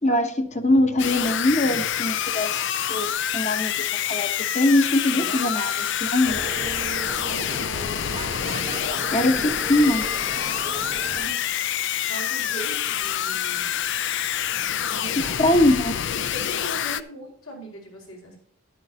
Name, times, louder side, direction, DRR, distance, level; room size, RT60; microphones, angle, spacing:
voice 1, 0.0-5.7 6.0-6.4 9.1-9.4 9.7-10.0 15.2-15.9, left 1 dB, 30° left, 8 dB, 1.0 m, -22 dB
sound 1, 1.0-17.0, left 10 dB, 55° left, 0.5 m, -27 dB
voice 2, 4.7-5.5 6.2-7.9 8.8-9.5 10.4-10.8 11.1-11.5 12.0-13.7 14.5-15.7 16.3-18.4, right 1 dB, 75° left, 0 dB, 4.8 m, -39 dB
sound 2, 6.2-11.3, right 2 dB, 30° right, 0.7 m, -36 dB
12.0 x 10.5 x 2.9 m, 0.63 s
head